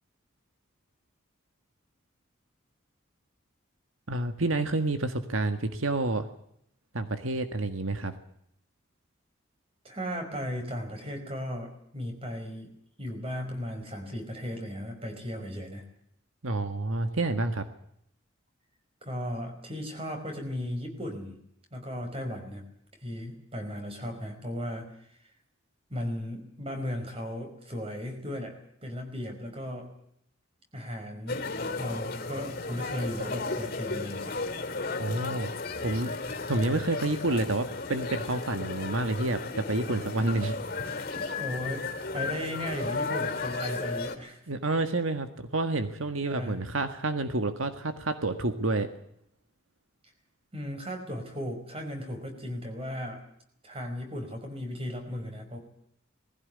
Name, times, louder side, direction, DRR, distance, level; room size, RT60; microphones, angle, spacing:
voice 1, 4.1-6.3 6.9-8.1 16.4-17.6 35.0-35.5 35.8-36.1 36.5-40.9 44.5-48.9, right 2 dB, 85° right, 8 dB, 1.7 m, -29 dB
voice 2, 9.8-12.7 13.0-15.8 19.0-21.4 21.7-22.7 23.0-24.9 25.9-28.6 28.8-29.9 30.7-31.4 31.8-34.3 41.4-44.4 46.2-46.6 50.5-53.2 53.6-55.6, equal, 30° right, 5 dB, 5.2 m, -36 dB
sound 1, 31.3-44.2, left 3 dB, 45° left, 2.8 m, -34 dB
20.5 x 16.0 x 9.7 m, 0.72 s
head